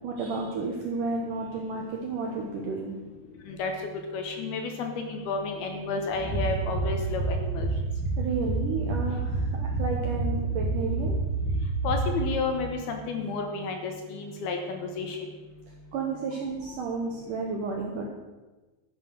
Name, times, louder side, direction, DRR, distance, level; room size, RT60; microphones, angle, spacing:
voice 1, 0.0-3.0 8.2-11.2 15.9-18.1, right 4 dB, 70° right, 0 dB, 2.0 m, -32 dB
voice 2, 4.1-7.7 11.8-15.2, left 4 dB, 70° left, 4 dB, 2.7 m, -31 dB
sound 1, 6.1-12.6, right 3 dB, 25° right, 0.3 m, -29 dB
13.5 x 7.5 x 6.5 m, 1.2 s
omnidirectional pair, 5.3 m